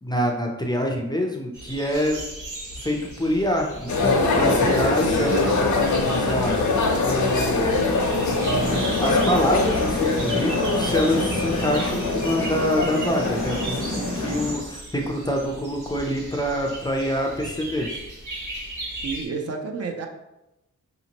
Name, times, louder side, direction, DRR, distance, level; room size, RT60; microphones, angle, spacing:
voice 1, 0.0-2.2 2.8-6.8 7.0-7.7 8.4-17.9, equal, 15° left, 0 dB, 0.4 m, -26 dB
sound 1, 1.5-19.2, right 1 dB, 80° right, 1.1 m, -37 dB
sound 2, 3.9-14.4, left 3 dB, 75° left, 0.7 m, -23 dB
sound 3, 8.6-14.6, left 1 dB, 30° right, 0.9 m, -31 dB
voice 2, 19.0-20.1, right 4 dB, 55° right, 3 dB, 0.5 m, -31 dB
5.0 x 2.9 x 2.8 m, 0.92 s
wide cardioid pair, 155°, 30 cm